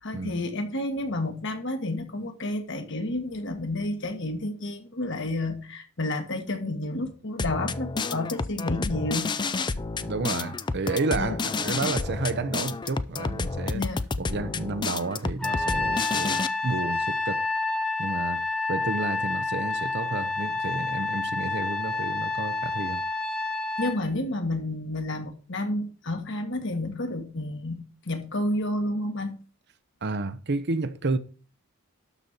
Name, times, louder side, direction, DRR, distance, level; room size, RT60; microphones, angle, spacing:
voice 1, 0.0-9.3 11.2-11.4 13.7-14.0 23.8-29.4, left 1 dB, 55° left, 1.6 m, -30 dB
sound 1, 7.4-16.5, left 4 dB, 20° left, 0.4 m, -30 dB
voice 2, 10.0-13.8 14.2-17.4 18.0-18.4 18.7-23.0 30.0-31.2, right 3 dB, 50° right, 0.7 m, -31 dB
Trumpet, 15.4-24.0, left 3 dB, 5° left, 1.2 m, -29 dB
12.5 x 4.3 x 6.5 m
head